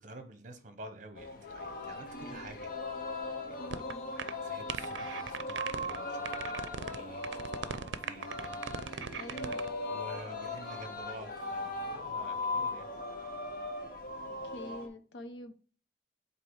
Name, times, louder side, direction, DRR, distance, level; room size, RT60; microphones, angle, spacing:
voice 1, 0.0-2.8 3.1-3.7 4.4-8.8 9.3-9.6 9.9-13.5, right 1 dB, 45° right, 0.9 m, -50 dB
Singing, 1.2-14.9, left 2 dB, 50° left, 1.0 m, -39 dB
voice 2, 2.1-2.5 3.6-4.1 9.1-9.6 14.2-15.5, left 1 dB, 75° left, 0.7 m, -46 dB
sound 1, 3.7-3.9 4.2-4.3 4.7-6.0 6.2-7.0 7.2-9.7, right 7 dB, 85° right, 0.5 m, -38 dB
7.8 x 2.9 x 4.7 m
head